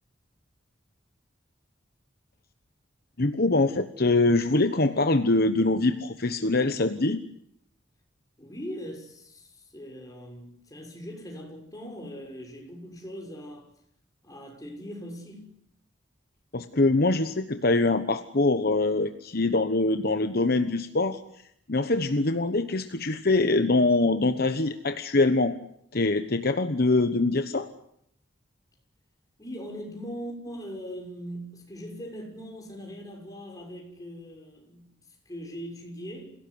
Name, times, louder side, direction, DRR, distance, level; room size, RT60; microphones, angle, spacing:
voice 1, 3.2-7.2 16.5-21.2 21.7-25.5 25.9-27.7, left 2 dB, 55° left, 1.2 m, -24 dB
voice 2, 8.4-13.7 14.2-15.5 29.4-36.3, equal, 20° left, 6.4 m, -40 dB
27.0 x 17.5 x 9.6 m
head